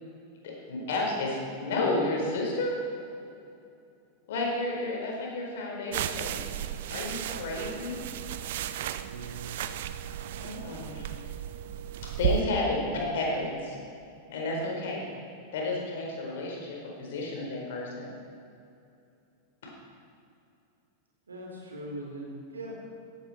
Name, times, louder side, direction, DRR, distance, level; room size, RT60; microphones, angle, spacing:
voice 1, 0.4-2.8 4.3-8.0 10.4-11.1 12.0-12.8 13.1-13.8 14.3-15.0 15.5-18.1 19.6-19.7, left 2 dB, 55° left, -1 dB, 4.5 m, -32 dB
sound 1, 5.9-12.4, right 11 dB, 55° right, 0.6 m, -34 dB
voice 2, 9.0-9.6 12.7-13.1 21.3-22.8, right 1 dB, 75° right, -2 dB, 4.1 m, -41 dB
17.0 x 14.5 x 4.5 m, 2.6 s
figure-of-eight pair, 90°, 0 cm